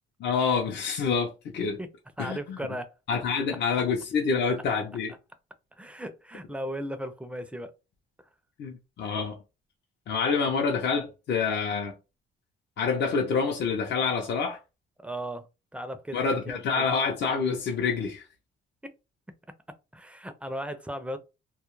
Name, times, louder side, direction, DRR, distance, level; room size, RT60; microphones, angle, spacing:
voice 1, 0.2-1.8 2.2-2.6 3.1-5.1 8.6-9.4 10.1-11.9 12.8-14.6 16.1-18.3, left 5 dB, 60° left, 0.6 m, -27 dB
voice 2, 2.2-2.9 5.7-7.7 8.2-8.3 15.0-15.5 15.7-16.9 18.8-18.9 19.9-21.2, equal, 5° right, 0.4 m, -36 dB
2.3 x 2.0 x 3.0 m
cardioid pair, 90°, 20 cm